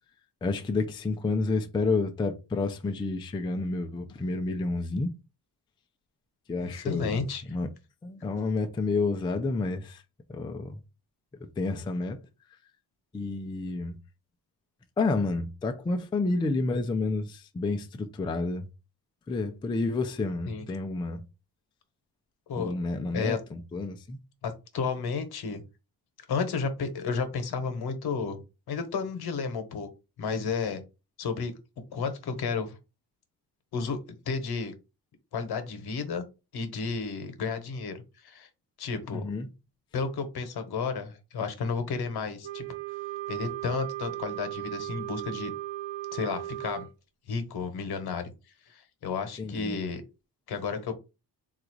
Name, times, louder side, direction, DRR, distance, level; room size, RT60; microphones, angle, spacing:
voice 1, 0.4-5.1 6.5-7.7 8.0-10.0 10.3-10.8 11.6-12.2 12.5-12.6 13.1-14.0 15.0-18.7 19.3-21.2 22.5-24.2 39.1-39.5 49.4-49.8, left 3 dB, 15° left, 0.3 m, -30 dB
voice 2, 6.6-7.4 20.5-20.6 22.5-22.7 23.1-23.4 24.4-25.6 26.3-28.4 28.7-29.9 30.2-30.8 31.2-31.5 31.9-32.8 33.7-34.0 34.3-34.7 35.3-36.2 36.5-38.0 38.2-38.5 38.8-39.3 39.9-42.6 43.3-45.5 46.1-46.9 47.3-48.2 48.7-50.0 50.5-50.9, left 5 dB, 65° left, 1.0 m, -32 dB
Wind instrument woodwind instrument, 42.4-46.9, right 14 dB, 80° right, 0.6 m, -36 dB
3.9 x 2.4 x 4.5 m
wide cardioid pair, 160°, 40 cm